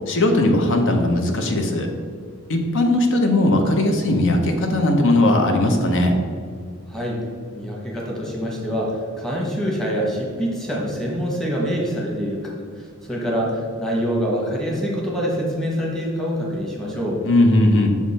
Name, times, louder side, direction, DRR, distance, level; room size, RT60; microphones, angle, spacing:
voice 1, 0.1-1.9 2.5-6.2 17.2-17.9, left 1 dB, 60° left, 4 dB, 0.7 m, -18 dB
voice 2, 6.9-7.2 7.5-17.2, equal, 5° left, -3 dB, 1.1 m, -25 dB
6.2 x 3.7 x 4.1 m, 2.1 s
head